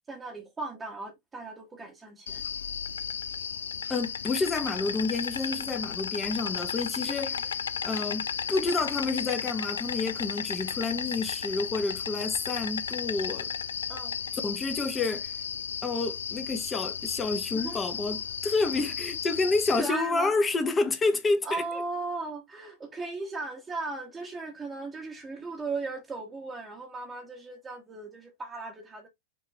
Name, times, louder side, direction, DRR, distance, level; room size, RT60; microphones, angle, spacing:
voice 1, 0.1-2.4 5.5-5.6 7.0-7.4 13.9-14.1 17.5-17.9 19.8-20.3 21.4-29.1, right 3 dB, 15° right, 1.2 m, -37 dB
Insect, 2.3-19.8, left 7 dB, 70° left, 0.3 m, -34 dB
voice 2, 3.9-7.4 7.8-13.5 14.4-15.3 15.8-21.6, left 3 dB, 20° left, 1.0 m, -29 dB
5.4 x 2.9 x 3.2 m
figure-of-eight pair, 90°, 0 cm